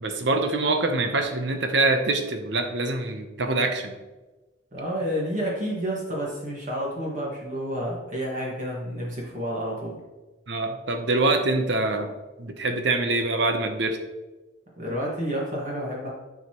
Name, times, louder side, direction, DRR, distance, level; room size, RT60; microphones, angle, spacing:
voice 1, 0.0-3.9 10.5-12.1 12.4-14.0, right 2 dB, 65° right, 6 dB, 0.8 m, -24 dB
voice 2, 4.7-10.0 14.8-16.1, equal, 40° right, -4 dB, 1.8 m, -30 dB
11.0 x 4.8 x 3.0 m, 1.1 s
head